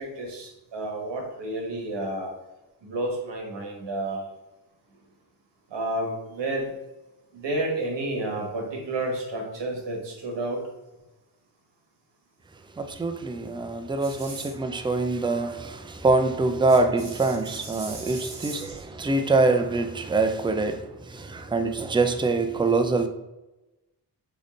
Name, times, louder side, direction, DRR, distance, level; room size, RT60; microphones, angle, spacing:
voice 1, 0.0-2.3 2.8-4.2 5.7-6.7 7.3-10.6 14.0-14.5 17.5-18.8, right 2 dB, 85° right, 1.5 m, -31 dB
voice 2, 12.8-23.1, right 3 dB, 10° right, 0.4 m, -24 dB
3.9 x 3.7 x 3.7 m
cardioid pair, 85°, 42 cm